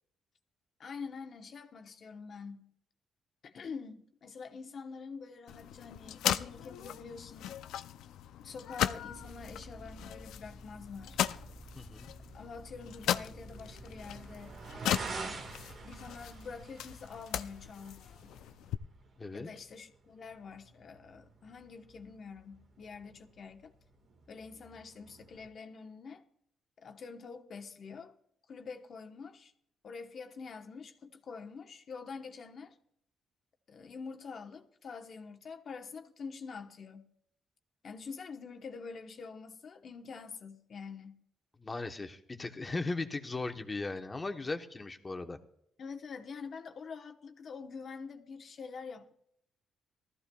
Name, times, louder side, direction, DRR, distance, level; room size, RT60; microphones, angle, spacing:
voice 1, 0.8-2.7 3.4-7.5 8.4-11.2 12.3-14.6 15.3-18.3 19.3-23.7 24.3-26.2 26.8-28.1 28.5-29.5 29.8-32.8 33.7-37.1 37.8-41.2 45.8-49.1, left 5 dB, 55° left, 1.0 m, -46 dB
sound 1, 5.5-18.7, left 11 dB, 85° left, 0.4 m, -38 dB
sound 2, 9.1-16.6, right 1 dB, ahead, 0.8 m, -52 dB
sound 3, 10.9-25.5, right 4 dB, 60° right, 1.6 m, -49 dB
voice 2, 11.7-12.1 19.2-19.5 41.6-45.4, left 3 dB, 25° left, 1.1 m, -37 dB
19.0 x 14.0 x 2.3 m
cardioid pair, 90°, 0 cm